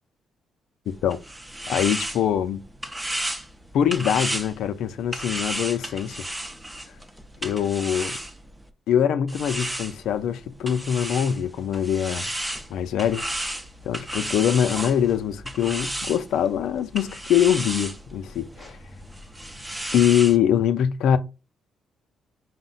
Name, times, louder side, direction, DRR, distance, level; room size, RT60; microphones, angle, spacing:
voice 1, 0.9-1.2 1.7-2.6 3.7-6.2 7.4-8.2 8.9-12.3 12.7-13.2 13.9-18.8 19.9-21.2, left 9 dB, 75° left, 0.4 m, -23 dB
sound 1, 0.9-8.7 9.3-20.4, right 1 dB, 10° right, 0.7 m, -34 dB
5.2 x 2.1 x 3.9 m
cardioid pair, 90°, 0 cm